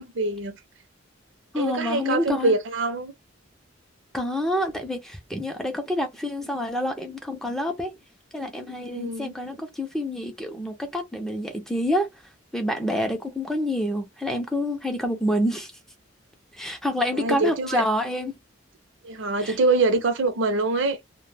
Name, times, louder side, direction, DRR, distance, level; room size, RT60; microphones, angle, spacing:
voice 1, 0.1-0.5 1.6-3.1 8.8-9.3 17.1-17.9 19.0-21.0, right 3 dB, 60° right, 0.5 m, -24 dB
voice 2, 1.5-2.5 4.1-7.9 8.3-12.1 12.5-15.7 16.5-18.4 19.4-19.6, left 1 dB, ahead, 0.4 m, -27 dB
2.1 x 2.1 x 3.1 m
head